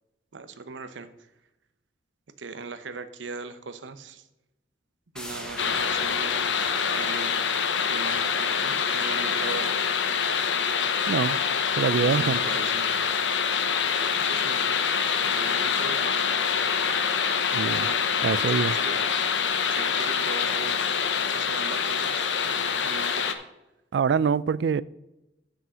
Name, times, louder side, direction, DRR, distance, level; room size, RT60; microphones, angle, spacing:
voice 1, 0.3-1.1 2.4-4.3 5.1-7.3 7.9-9.7 11.7-12.9 14.2-14.6 15.2-16.1 17.6-18.0 18.5-18.9 19.7-21.0 21.3-23.3, right 4 dB, 90° right, 0.8 m, -39 dB
sound 1, 5.2-10.6 11.0-11.1, equal, 5° left, 1.1 m, -44 dB
sound 2, 5.6-23.3, left 6 dB, 85° left, 0.8 m, -25 dB
voice 2, 11.1-11.4 11.8-12.4 17.5-17.9 18.2-18.8 23.9-24.8, right 6 dB, 65° right, 0.3 m, -24 dB
7.4 x 6.3 x 6.2 m
head